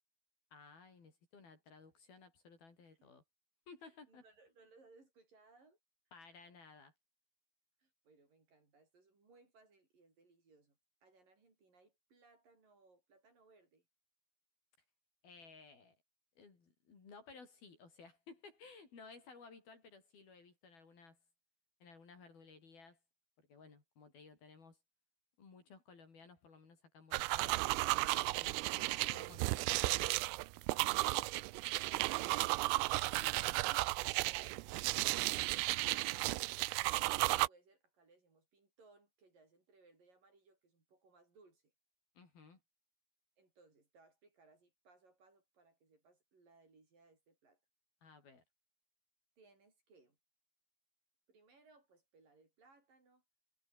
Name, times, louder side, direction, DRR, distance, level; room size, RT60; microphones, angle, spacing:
voice 1, 0.5-3.2 3.7-4.2 6.1-6.9 15.2-16.0 16.4-21.2 21.8-23.0 23.4-24.8 25.4-27.7 28.1-29.8 42.1-42.6 48.0-48.4, left 4 dB, 50° left, 6.8 m, -58 dB
voice 2, 3.8-5.8 7.8-13.9 37.3-41.7 43.4-47.6 49.4-50.2 51.3-53.2, right 3 dB, 45° right, 8.0 m, -67 dB
sound 1, 27.1-37.5, right 21 dB, 85° right, 3.4 m, -34 dB
omnidirectional pair, 5.7 m